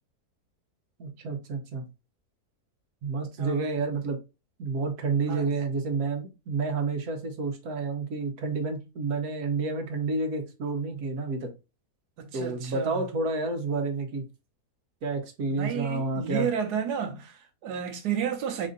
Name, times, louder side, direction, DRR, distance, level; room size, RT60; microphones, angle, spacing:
voice 1, 1.0-1.8 3.0-4.2 4.6-11.5 12.3-14.2 15.0-16.5, right 3 dB, 65° right, 1.4 m, -30 dB
voice 2, 3.4-3.8 5.3-5.5 12.2-13.0 15.5-18.7, right 8 dB, 85° right, 1.3 m, -32 dB
4.2 x 2.6 x 3.7 m
omnidirectional pair, 1.7 m